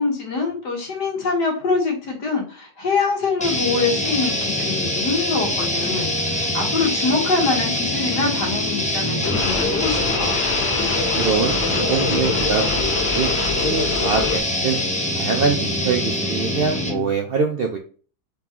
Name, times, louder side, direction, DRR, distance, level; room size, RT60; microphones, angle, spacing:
voice 1, 0.0-10.4, left 4 dB, 90° left, 0 dB, 2.0 m, -24 dB
sound 1, 3.4-17.1, left 1 dB, 10° left, 0.3 m, -24 dB
sound 2, 9.2-14.4, left 5 dB, 60° left, 0.7 m, -25 dB
voice 2, 11.1-14.8 15.1-17.8, right 5 dB, 85° right, 2 dB, 0.5 m, -24 dB
4.0 x 3.7 x 2.9 m, 0.39 s
omnidirectional pair, 1.7 m